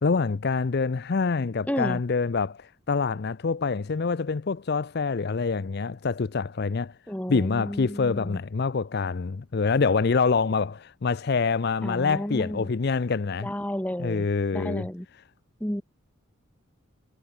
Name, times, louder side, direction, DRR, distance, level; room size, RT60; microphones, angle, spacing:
voice 1, 0.0-6.9 7.3-13.5 14.0-14.9, left 4 dB, 50° left, 0.5 m, -26 dB
voice 2, 1.7-2.0 7.1-8.4 11.8-12.7 13.4-14.3 14.5-15.1 15.6-15.8, equal, 5° left, 1.2 m, -32 dB
head